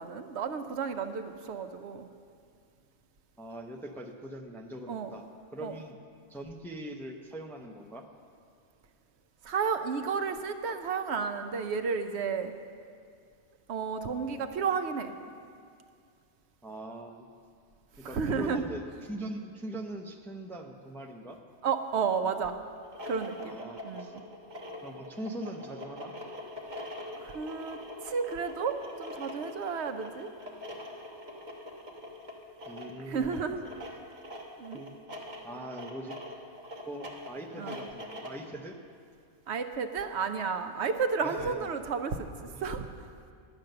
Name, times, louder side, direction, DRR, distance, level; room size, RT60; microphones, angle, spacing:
voice 1, 0.0-2.1 4.9-5.1 5.6-5.7 9.4-12.5 13.7-15.1 18.1-18.6 21.6-22.5 23.1-23.6 23.8-24.2 27.2-30.3 33.1-33.6 34.6-34.8 37.6-37.8 39.5-42.3 42.6-43.1, right 5 dB, 70° right, 8 dB, 0.9 m, -32 dB
voice 2, 3.4-6.0 6.3-8.1 16.6-17.3 18.0-21.4 23.4-24.1 24.8-26.1 32.7-33.6 34.7-34.9 35.4-36.2 36.9-38.8 41.2-41.6 42.5-42.7, right 1 dB, 5° left, 3 dB, 0.5 m, -41 dB
sound 1, 22.8-38.5, left 1 dB, 40° right, 1.3 m, -43 dB
10.5 x 9.2 x 6.6 m, 2.2 s
omnidirectional pair, 1.2 m